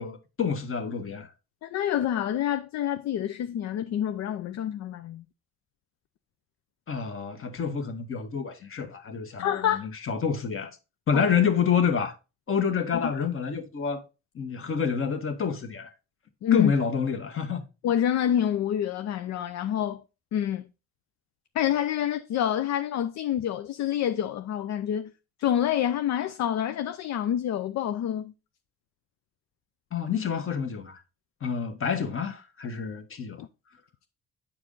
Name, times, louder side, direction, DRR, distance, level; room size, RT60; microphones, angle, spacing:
voice 1, 0.0-1.3 6.9-10.7 11.1-12.1 12.5-14.0 14.3-15.9 16.5-17.6 29.9-31.0 31.4-33.4, left 6 dB, 45° left, 1.5 m, -28 dB
voice 2, 1.6-5.2 9.4-9.9 11.1-11.3 12.9-13.0 16.4-16.7 17.8-20.0 20.3-20.7 21.5-25.1 25.4-28.3 33.4-33.5, left 10 dB, 65° left, 0.5 m, -27 dB
8.6 x 4.7 x 3.8 m
cardioid pair, 90°, 30 cm